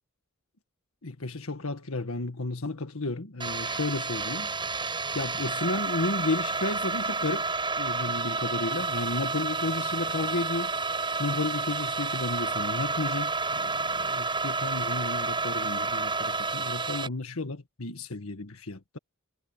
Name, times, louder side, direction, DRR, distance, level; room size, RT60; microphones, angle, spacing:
voice 1, 1.0-4.5 5.1-7.5 7.8-10.7 11.2-19.0, left 2 dB, 80° left, 1.7 m, -33 dB
sound 1, 3.4-17.1, right 3 dB, 25° right, 6.8 m, -30 dB
head